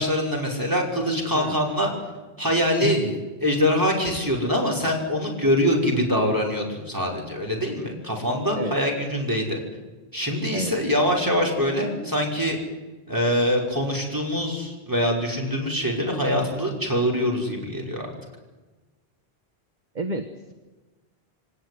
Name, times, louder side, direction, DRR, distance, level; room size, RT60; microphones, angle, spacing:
voice 1, 0.0-1.9 2.4-9.6 10.1-12.6 13.1-18.1, equal, 20° right, -1 dB, 5.6 m, -24 dB
voice 2, 2.8-3.1 8.5-8.7 10.5-10.7 19.9-20.5, right 2 dB, 45° right, 7 dB, 1.5 m, -29 dB
24.0 x 18.5 x 9.6 m, 1.2 s
omnidirectional pair, 1.0 m